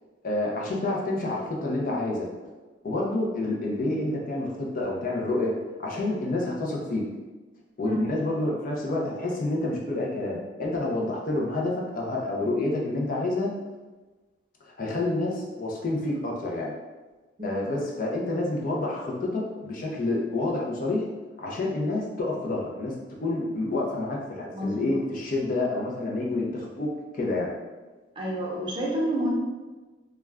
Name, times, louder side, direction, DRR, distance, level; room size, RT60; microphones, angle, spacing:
voice 1, 0.2-2.3 2.8-5.5 5.8-7.0 7.8-13.5 14.8-16.7 17.4-21.0 21.4-23.0 23.2-27.5, left 2 dB, 50° left, -2 dB, 0.5 m, -28 dB
voice 2, 24.5-25.0 28.2-29.3, equal, 25° right, -4 dB, 0.6 m, -29 dB
2.3 x 2.1 x 3.4 m, 1.2 s
head